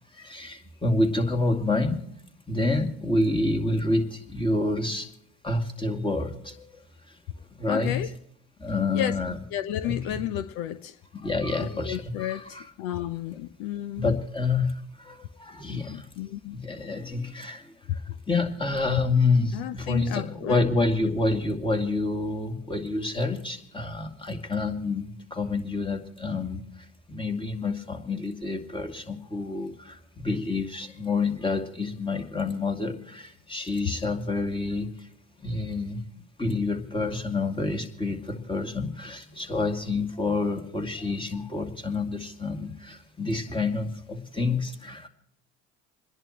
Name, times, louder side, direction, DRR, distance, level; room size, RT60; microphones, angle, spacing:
voice 1, 0.1-2.0 2.5-5.1 5.4-6.8 7.6-8.0 8.6-9.4 9.8-10.2 11.1-12.6 13.9-16.1 16.5-26.6 27.1-35.1 35.4-36.0 36.4-45.1, left 3 dB, 15° left, 2.4 m, -28 dB
voice 2, 7.7-8.1 8.9-9.1 9.5-11.0 11.6-14.1 15.7-16.6 19.5-20.6 21.0-21.1, left 12 dB, 75° left, 0.8 m, -32 dB
27.5 x 11.0 x 3.0 m
supercardioid pair, 75°, 35 cm